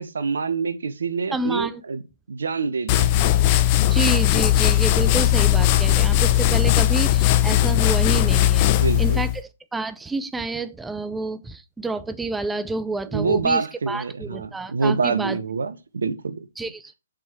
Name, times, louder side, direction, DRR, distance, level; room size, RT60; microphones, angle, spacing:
voice 1, 0.0-2.0 2.3-3.2 8.7-9.2 13.1-16.5, right 4 dB, 75° right, 1.2 m, -26 dB
voice 2, 1.3-1.8 3.9-8.7 9.0-9.3 9.7-15.4 16.6-16.9, right 3 dB, 5° right, 0.6 m, -29 dB
sound 1, 2.9-9.4, left 13 dB, 35° left, 0.7 m, -18 dB
7.2 x 5.5 x 4.6 m
figure-of-eight pair, 130°, 0 cm